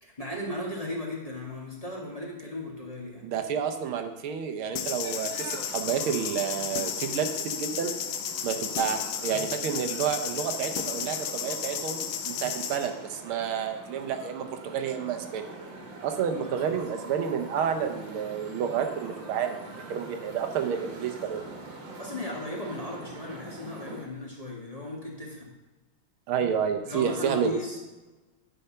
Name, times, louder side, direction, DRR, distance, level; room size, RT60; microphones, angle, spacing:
voice 1, 0.0-3.2 16.3-16.7 17.1-17.3 22.0-25.5 26.9-27.8, left 1 dB, 20° left, -3 dB, 1.6 m, -36 dB
voice 2, 3.2-7.9 8.4-15.5 16.0-21.4 26.3-27.5, right 7 dB, 85° right, 6 dB, 1.7 m, -30 dB
sound 1, 4.8-12.9, left 8 dB, 70° left, 1.2 m, -33 dB
sound 2, 5.0-24.1, right 2 dB, 65° right, 2.1 m, -44 dB
10.5 x 5.6 x 5.6 m, 1.1 s
omnidirectional pair, 2.3 m